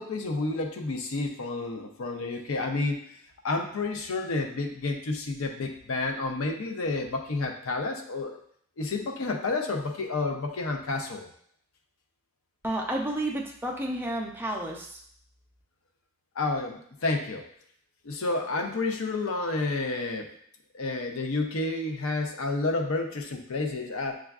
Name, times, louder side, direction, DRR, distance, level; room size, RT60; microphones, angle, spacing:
voice 1, 0.0-3.2 3.4-8.4 8.8-11.3 16.4-17.4 18.0-20.3 20.7-24.2, left 3 dB, 75° left, 3 dB, 0.6 m, -30 dB
voice 2, 12.6-15.0, right 1 dB, 10° right, -1 dB, 0.5 m, -31 dB
6.1 x 2.3 x 2.3 m, 0.63 s
head